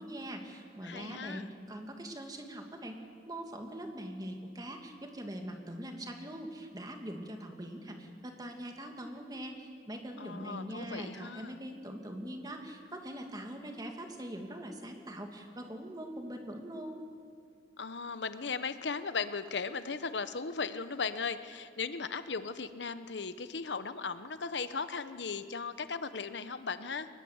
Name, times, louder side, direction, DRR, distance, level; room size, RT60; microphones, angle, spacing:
voice 1, 0.0-3.0 3.3-17.0, right 1 dB, 20° right, 3 dB, 2.3 m, -42 dB
voice 2, 0.8-1.5 10.2-11.6 17.8-27.1, left 5 dB, 80° left, 12 dB, 0.9 m, -37 dB
23.0 x 20.5 x 8.0 m, 2.2 s
head